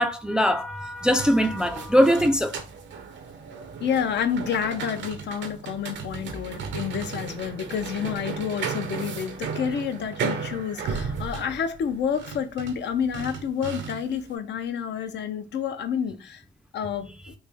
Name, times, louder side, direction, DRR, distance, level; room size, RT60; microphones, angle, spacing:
voice 1, 0.0-2.5, equal, 5° right, 0.3 m, -21 dB
sound 1, 1.0-14.3, right 6 dB, 70° right, 0.6 m, -35 dB
voice 2, 3.8-16.4 16.7-17.3, left 7 dB, 65° left, 0.6 m, -29 dB
3.2 x 2.6 x 3.4 m
cardioid pair, 90°, 20 cm